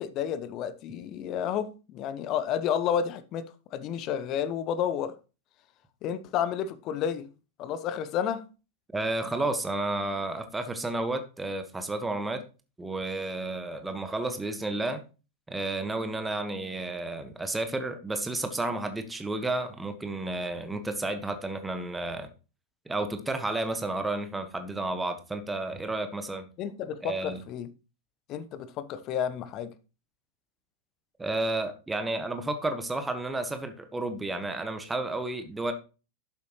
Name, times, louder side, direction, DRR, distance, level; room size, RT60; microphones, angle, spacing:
voice 1, 0.0-5.2 6.0-7.3 7.6-8.4 26.6-27.7 28.3-29.7, left 8 dB, 35° left, 0.9 m, -31 dB
voice 2, 8.9-12.4 12.8-15.0 15.5-22.3 22.9-26.5 27.0-27.4 31.2-35.7, right 2 dB, 10° right, 1.5 m, -31 dB
11.5 x 8.3 x 3.1 m
figure-of-eight pair, 90°, 0 cm